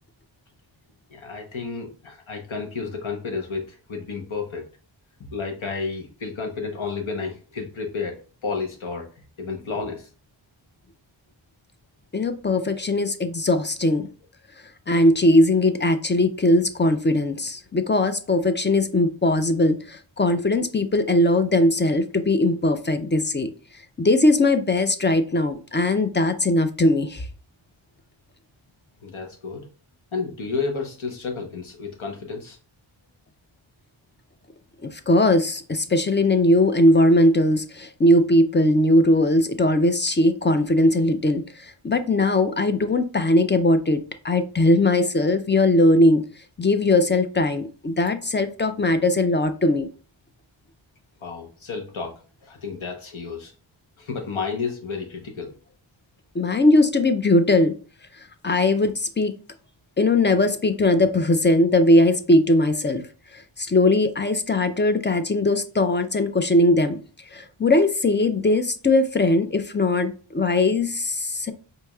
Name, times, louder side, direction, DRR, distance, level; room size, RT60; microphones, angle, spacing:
voice 1, 1.1-4.6 5.3-8.2 8.4-9.1 9.4-10.1 29.0-29.7 30.1-32.6 51.2-53.5 54.0-55.5, left 4 dB, 75° left, 1.1 m, -31 dB
voice 2, 12.1-14.1 14.9-23.5 24.0-27.3 34.8-46.2 46.6-49.9 56.3-57.7 58.2-59.3 60.0-63.0 63.3-67.0 67.3-71.5, left 1 dB, 25° left, 0.4 m, -20 dB
4.5 x 2.7 x 2.3 m
wide cardioid pair, 65°, 48 cm